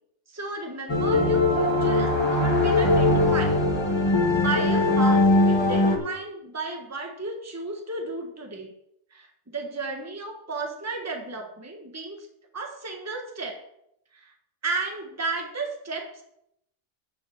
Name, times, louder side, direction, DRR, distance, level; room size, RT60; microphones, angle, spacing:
voice 1, 0.3-3.6 4.3-8.7 9.1-12.3 12.5-13.6 14.1-14.3 14.6-16.2, right 3 dB, 10° right, 3 dB, 1.3 m, -34 dB
sound 1, 0.9-6.0, left 2 dB, 20° left, 1.4 m, -21 dB
9.8 x 5.7 x 7.1 m, 0.76 s
omnidirectional pair, 1.4 m